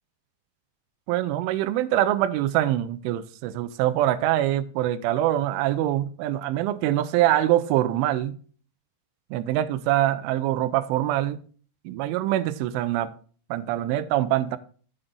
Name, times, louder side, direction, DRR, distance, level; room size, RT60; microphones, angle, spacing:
voice 1, 1.1-8.3 9.3-11.4 11.9-13.1 13.5-14.6, right 13 dB, 80° right, 3.0 m, -24 dB
7.9 x 7.8 x 3.7 m
omnidirectional pair, 5.8 m